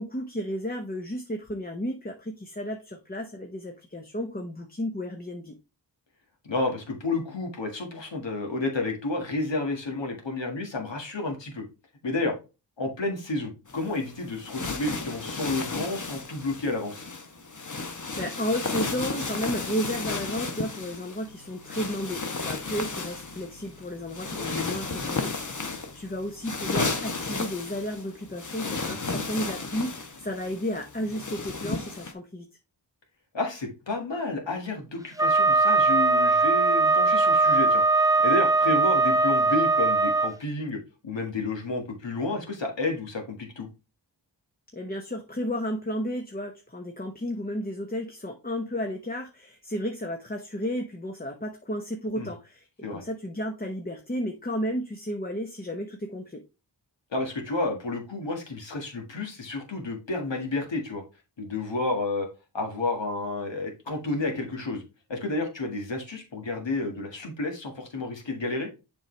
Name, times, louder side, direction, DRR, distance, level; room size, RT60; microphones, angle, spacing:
voice 1, 0.0-5.5 17.9-32.5 44.7-52.6 52.9-56.4, equal, 20° left, 0.9 m, -33 dB
voice 2, 6.5-11.7 12.0-12.3 12.8-17.0 24.3-24.8 28.8-29.2 33.3-43.7 52.2-52.3 52.8-53.0 57.1-61.0 61.4-62.3 62.5-64.8 65.1-68.7, left 2 dB, 80° left, 1.8 m, -31 dB
sound 1, 13.7-32.1, left 3 dB, 45° left, 1.1 m, -34 dB
Wind instrument woodwind instrument, 35.2-40.3, right 3 dB, 10° right, 0.7 m, -21 dB
7.1 x 5.1 x 3.2 m
cardioid pair, 45°, 44 cm